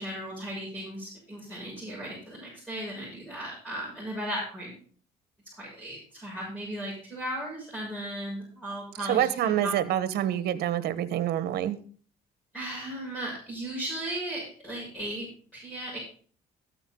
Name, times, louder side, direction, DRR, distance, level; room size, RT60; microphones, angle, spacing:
voice 1, 0.0-4.7 5.6-9.7 12.5-16.0, right 1 dB, 5° left, -6 dB, 6.8 m, -36 dB
voice 2, 9.1-11.8, right 11 dB, 70° right, 12 dB, 1.3 m, -26 dB
13.5 x 9.1 x 3.9 m, 0.44 s
cardioid pair, 110°, 17 cm